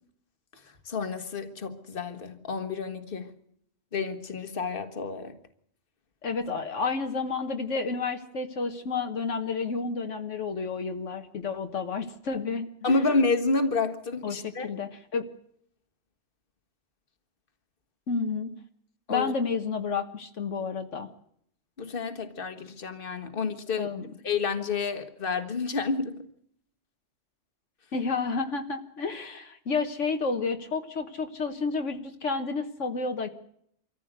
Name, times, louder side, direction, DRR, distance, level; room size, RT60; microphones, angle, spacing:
voice 1, 0.9-3.3 3.9-5.3 12.8-14.7 19.1-19.3 21.8-23.9 24.2-26.2, left 4 dB, 45° left, 1.7 m, -29 dB
voice 2, 6.2-13.0 14.2-15.2 18.1-18.5 19.1-21.1 23.8-24.1 27.9-33.3, left 4 dB, 75° left, 1.6 m, -30 dB
24.5 x 14.5 x 8.0 m
omnidirectional pair, 1.3 m